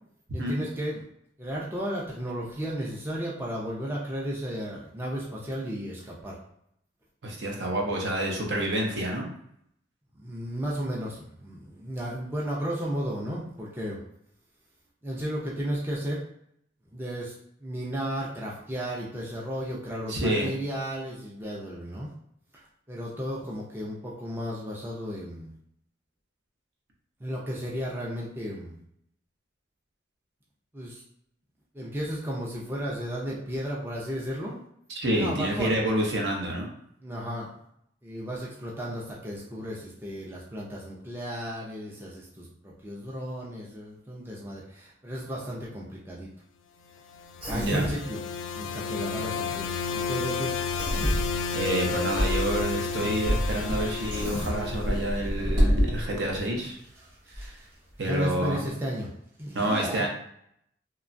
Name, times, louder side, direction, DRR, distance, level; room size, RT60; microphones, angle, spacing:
voice 1, 0.3-1.0 1.4-6.4 10.2-14.0 15.0-16.2 16.9-17.3 17.6-22.1 22.5-25.5 27.2-28.8 30.7-31.0 31.7-34.6 35.2-35.8 37.0-37.5 38.0-46.3 47.5-48.2 48.5-50.5 57.4-57.5 58.0-59.1 59.4-60.1, equal, 10° right, -4 dB, 0.4 m, -34 dB
voice 2, 7.2-9.3 20.1-20.5 34.9-36.7 47.5-47.9 51.5-56.8 57.3-57.6 58.0-58.6 59.5-60.1, right 1 dB, 65° right, 0 dB, 0.6 m, -28 dB
sound 1, 47.1-55.3, left 5 dB, 80° left, 0.3 m, -32 dB
Human voice, 47.4-48.0 50.8-51.2 54.1-54.6, equal, 30° right, 0.9 m, -32 dB
sound 2, 51.0-56.4 57.0-57.1 57.3-57.5, equal, 80° right, 1.1 m, -27 dB
2.9 x 2.2 x 2.5 m, 0.72 s
head